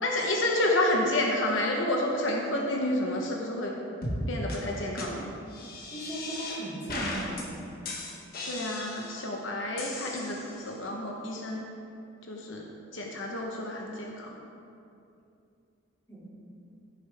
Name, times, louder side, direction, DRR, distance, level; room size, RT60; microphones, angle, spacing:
voice 1, 0.0-3.7 4.3-5.3 8.5-11.6 12.3-12.6 12.9-14.3, left 1 dB, 70° left, 0 dB, 1.0 m, -29 dB
sound 1, 4.0-4.2 4.5-4.6 5.0-5.1 5.5-6.6 6.9-7.4 7.8-9.2 9.8-10.7, left 2 dB, 45° left, 1.4 m, -37 dB
voice 2, 5.9-7.6 16.1-16.3, right 1 dB, 15° left, -8 dB, 2.5 m, -37 dB
15.5 x 6.6 x 3.5 m, 2.6 s
head